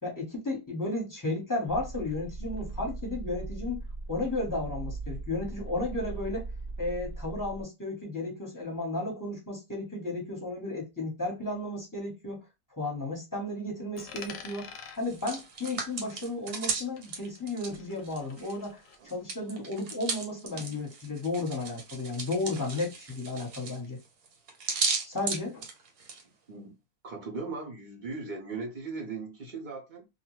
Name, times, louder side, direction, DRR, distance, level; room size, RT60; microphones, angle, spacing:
voice 1, 0.0-3.8 4.1-6.5 6.8-12.4 12.8-24.0 25.1-25.6, left 2 dB, 15° left, 0.9 m, -33 dB
sound 1, 1.7-7.6, right 3 dB, 50° left, 0.5 m, -39 dB
Coin (dropping), 14.0-16.7 17.0-19.0, left 6 dB, 65° left, 0.9 m, -48 dB
Hands, 15.0-18.7 18.9-26.2, right 4 dB, 80° right, 1.4 m, -35 dB
voice 2, 27.0-30.1, right 4 dB, 45° right, 0.6 m, -38 dB
2.6 x 2.3 x 3.0 m
omnidirectional pair, 1.6 m